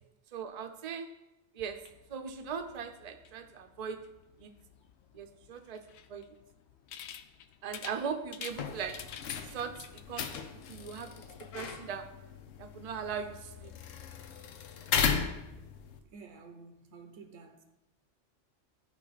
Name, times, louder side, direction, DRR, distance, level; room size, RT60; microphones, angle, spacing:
voice 1, 0.3-1.1 1.6-4.1 4.4-4.5 5.1-5.8 6.1-6.3 7.6-9.1 9.5-11.2 11.5-12.1 12.6-13.7, right 6 dB, 40° right, 0.6 m, -39 dB
sound 1, 1.6-10.0, left 9 dB, 70° left, 0.8 m, -51 dB
sound 2, 8.5-16.0, left 6 dB, 90° left, 1.1 m, -36 dB
voice 2, 16.1-17.6, right 4 dB, 85° right, 1.1 m, -51 dB
13.0 x 4.9 x 4.0 m
omnidirectional pair, 1.3 m